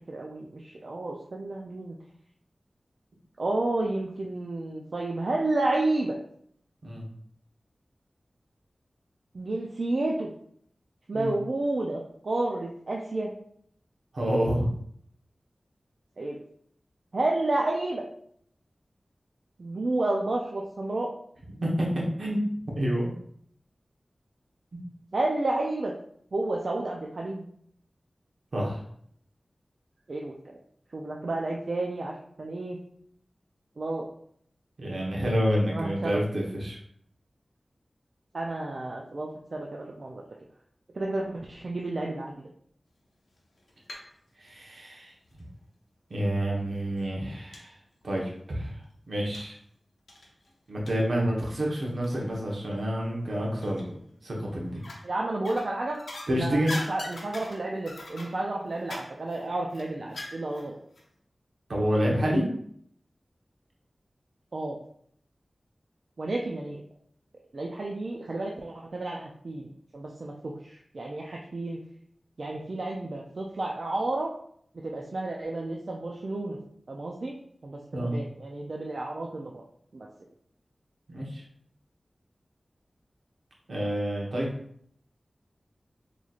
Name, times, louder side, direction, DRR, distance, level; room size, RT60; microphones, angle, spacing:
voice 1, 0.1-2.0 3.4-6.2 9.3-10.3 11.1-13.3 16.2-16.4 17.1-18.0 19.6-21.1 25.1-25.9 26.3-27.4 30.1-30.5 30.9-32.8 33.8-34.1 35.7-36.2 38.3-40.2 40.9-42.4 55.0-56.0 56.4-60.8 64.5-64.8 66.2-66.8 67.5-71.8 72.4-74.3 74.8-76.6 76.9-77.3 77.6-79.6 79.9-80.1, right 2 dB, 65° right, -1 dB, 0.4 m, -31 dB
voice 2, 14.1-14.7 21.6-22.4 22.7-23.1 24.7-24.8 28.5-28.8 34.8-36.8 44.4-45.1 46.1-47.7 48.0-48.8 49.1-49.5 50.7-53.9 54.2-54.8 56.3-56.8 61.7-62.5 77.9-78.2 81.1-81.4 83.7-84.5, equal, 85° right, -3 dB, 1.0 m, -28 dB
sound 1, 43.4-44.1 44.4-45.5 46.3-46.4 46.8-46.9 47.5-47.7 48.0-48.1 49.3-49.6 50.1-52.4 52.7-52.9 53.6-54.2 54.7-55.1 55.4-60.7 61.0-61.1, left 1 dB, 85° left, 0.6 m, -42 dB
4.0 x 3.1 x 2.4 m, 0.65 s
wide cardioid pair, 85°, 0 cm